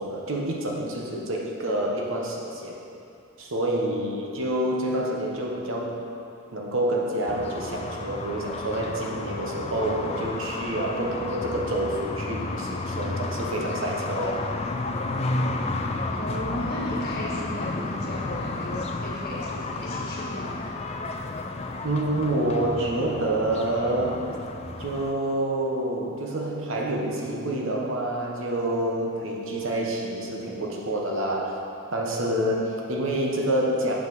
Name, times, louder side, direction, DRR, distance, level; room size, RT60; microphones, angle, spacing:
voice 1, 0.0-2.8 3.4-6.0 6.5-14.4 21.8-24.3 24.8-31.6 31.9-33.9, right 1 dB, 65° right, -1 dB, 1.1 m, -27 dB
sound 1, 7.3-25.1, left 2 dB, 30° left, 0.4 m, -32 dB
voice 2, 16.1-20.6, equal, 45° left, -5 dB, 1.6 m, -35 dB
7.6 x 5.9 x 6.1 m, 2.6 s
head